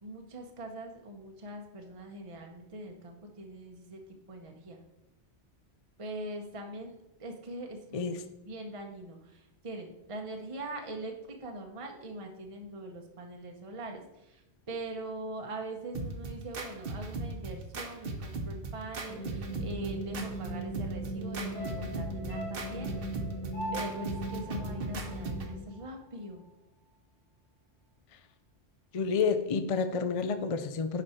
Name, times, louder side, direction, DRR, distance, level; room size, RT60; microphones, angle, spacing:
voice 1, 0.0-4.0 4.3-4.8 6.0-8.2 8.5-11.1 11.4-23.2 23.7-26.4, right 1 dB, 30° right, 3 dB, 0.9 m, -42 dB
sound 1, 15.9-25.5, right 3 dB, 60° right, 1.1 m, -38 dB
sound 2, 19.1-25.5, right 1 dB, 75° right, 1.9 m, -39 dB
sound 3, 21.5-25.9 26.2-26.3, equal, 80° left, 2.6 m, -43 dB
voice 2, 28.9-31.0, left 5 dB, 45° left, 9 dB, 0.5 m, -29 dB
10.0 x 5.1 x 4.3 m, 0.91 s
omnidirectional pair, 1.1 m